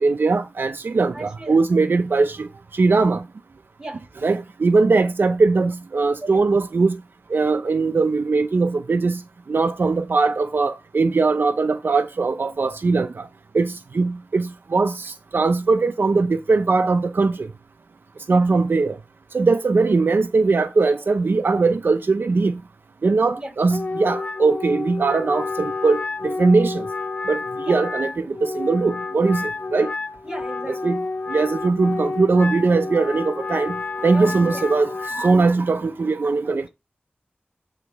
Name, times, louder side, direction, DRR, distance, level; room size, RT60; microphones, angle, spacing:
voice 1, 0.0-2.5 2.7-3.2 4.2-7.0 7.3-9.2 9.5-13.3 13.5-17.3 18.3-19.0 19.3-22.5 23.0-26.8 27.3-27.4 27.7-29.9 30.8-31.0 31.3-33.7 34.0-36.7, right 3 dB, 80° right, 0.5 m, -20 dB
voice 2, 1.1-1.7 3.8-4.1 6.2-6.3 18.3-18.5 23.4-23.5 27.6-27.8 30.2-31.0 34.1-34.7 36.4-36.6, right 1 dB, 20° right, 5.2 m, -36 dB
Wind instrument woodwind instrument, 23.7-35.4, left 3 dB, 45° left, 0.6 m, -30 dB
8.9 x 4.0 x 4.6 m
wide cardioid pair, 75°, 4 cm